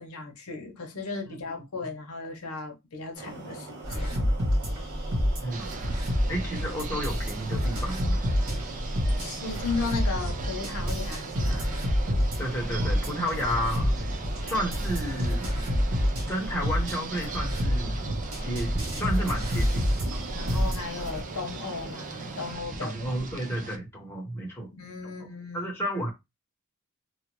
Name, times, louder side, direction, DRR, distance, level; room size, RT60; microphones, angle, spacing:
voice 1, 0.0-4.3 9.1-11.8 20.3-22.9 24.7-25.7, left 4 dB, 80° left, 0.8 m, -36 dB
sound 1, 3.1-22.6, right 3 dB, 55° right, 1.4 m, -42 dB
sound 2, 3.8-21.2, equal, 85° right, 1.3 m, -28 dB
voice 2, 5.4-5.7 6.3-8.2 12.4-14.0 14.4-15.5 16.3-18.0 18.4-20.0 20.5-20.8 22.8-24.7 25.0-25.1 25.5-26.1, equal, 10° left, 1.0 m, -32 dB
sound 3, 5.5-23.8, right 3 dB, 35° right, 0.5 m, -38 dB
2.8 x 2.4 x 2.9 m
head